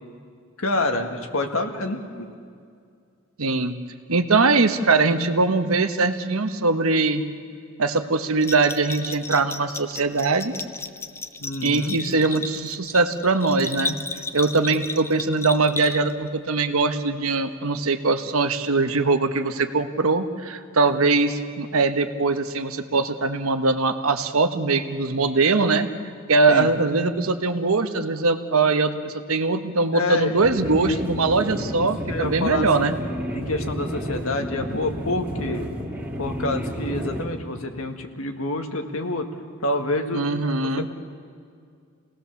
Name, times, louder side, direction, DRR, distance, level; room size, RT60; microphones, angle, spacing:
voice 1, 0.6-2.3 11.4-12.0 26.5-26.7 29.9-30.4 30.8-31.0 31.6-33.0 33.3-35.7 36.2-39.3 39.6-40.3, left 2 dB, 80° left, 5 dB, 1.8 m, -27 dB
voice 2, 3.4-3.7 4.1-7.2 7.8-10.5 11.6-14.0 14.3-25.9 26.3-32.9 40.1-40.9, right 3 dB, 85° right, 8 dB, 1.2 m, -21 dB
Bell, 8.4-16.3, left 3 dB, 10° left, 0.7 m, -33 dB
sound 1, 30.4-37.2, equal, 10° right, 2.3 m, -31 dB
28.5 x 18.0 x 7.1 m, 2.3 s
head